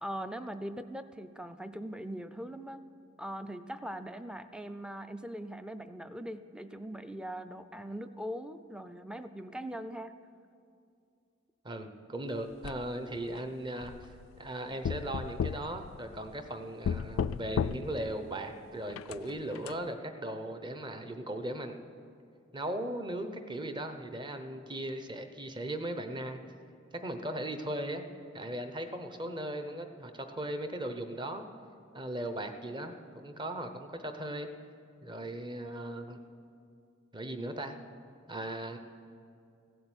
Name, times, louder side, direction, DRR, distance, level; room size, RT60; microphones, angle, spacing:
voice 1, 0.0-2.8 3.2-10.2, equal, 5° right, 10 dB, 0.4 m, -41 dB
voice 2, 11.6-14.1 14.4-21.8 22.5-26.4 26.9-28.0 28.3-31.4 31.9-34.5 35.0-36.2 37.1-37.8 38.3-38.8, right 1 dB, 25° right, 7 dB, 0.8 m, -38 dB
sound 1, 12.6-13.3 13.8-14.5 14.8-16.5 16.8-18.1 18.9-19.8, left 7 dB, 80° left, 0.3 m, -35 dB
16.0 x 7.8 x 8.0 m, 2.5 s
head